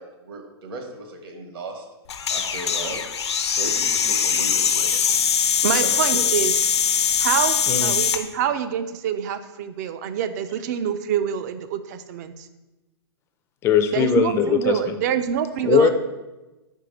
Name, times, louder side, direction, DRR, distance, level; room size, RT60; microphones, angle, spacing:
voice 1, 0.0-1.8 2.3-3.0 3.5-5.0 5.8-6.3, right 2 dB, 60° right, 3 dB, 1.4 m, -36 dB
sound 1, 2.1-8.2, left 7 dB, 80° left, 0.7 m, -22 dB
voice 2, 5.6-6.7 7.2-12.5 13.9-15.9, right 9 dB, 40° right, 11 dB, 0.5 m, -26 dB
voice 3, 13.6-14.8 15.6-15.9, left 8 dB, 20° left, 8 dB, 0.4 m, -19 dB
4.8 x 4.5 x 5.2 m, 1.1 s
hypercardioid pair, 145°, 14 cm